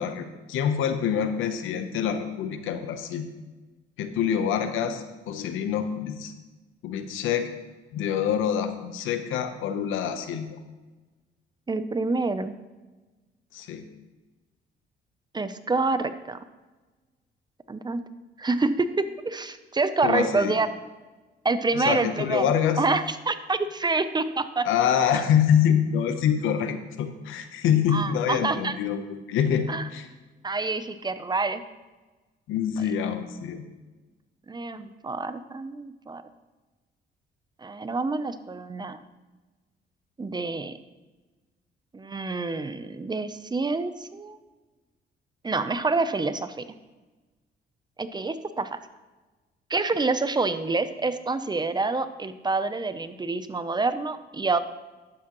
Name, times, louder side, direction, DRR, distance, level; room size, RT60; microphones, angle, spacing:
voice 1, 0.0-3.3 4.0-6.3 6.8-7.5 7.9-10.5 13.5-13.9 20.0-20.5 21.7-22.8 24.6-29.0 29.3-30.1 32.5-33.6, left 8 dB, 90° left, 9 dB, 0.9 m, -26 dB
voice 2, 11.7-12.5 15.3-16.4 17.7-18.0 18.4-20.7 21.4-24.7 27.9-28.8 29.7-29.9 30.4-31.6 34.5-36.2 37.6-39.0 40.2-40.7 41.9-44.4 45.4-46.6 48.0-48.8 49.7-54.6, right 3 dB, 20° right, 11 dB, 0.6 m, -27 dB
12.0 x 8.3 x 3.0 m, 1.2 s
cardioid pair, 90°, 20 cm